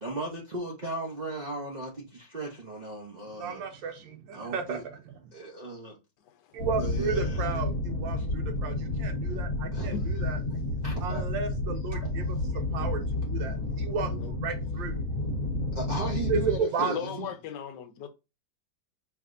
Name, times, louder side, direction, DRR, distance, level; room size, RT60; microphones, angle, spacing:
voice 1, 0.0-3.6 4.3-4.8 5.3-6.0 6.7-7.5 8.1-8.2 9.7-9.9 10.8-11.2 11.9-12.6 15.7-17.3, right 2 dB, 55° right, 0.4 m, -37 dB
voice 2, 3.3-5.0 6.5-9.9 10.2-10.4 11.0-15.0 16.3-16.9, right 5 dB, 85° right, 1.4 m, -33 dB
voice 3, 6.2-6.6 9.9-10.0 14.1-14.3 16.8-18.1, left 8 dB, 70° left, 1.2 m, -37 dB
sound 1, 6.6-16.6, left 2 dB, 50° left, 1.5 m, -30 dB
4.7 x 3.3 x 2.5 m
omnidirectional pair, 2.0 m